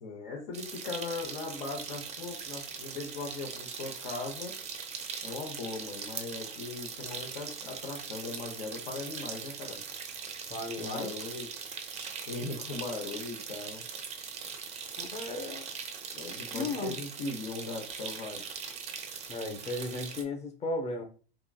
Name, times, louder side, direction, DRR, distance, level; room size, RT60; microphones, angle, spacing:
voice 1, 0.0-4.6 5.2-9.8 10.8-11.5 12.3-13.8 16.2-18.4, left 3 dB, 70° left, 0.7 m, -39 dB
sound 1, 0.5-20.2, right 6 dB, 25° right, 0.4 m, -41 dB
voice 2, 10.5-11.1 15.0-15.7 16.5-17.0 19.3-21.0, left 2 dB, 20° left, 0.6 m, -35 dB
2.9 x 2.4 x 2.3 m
hypercardioid pair, 90°, 29 cm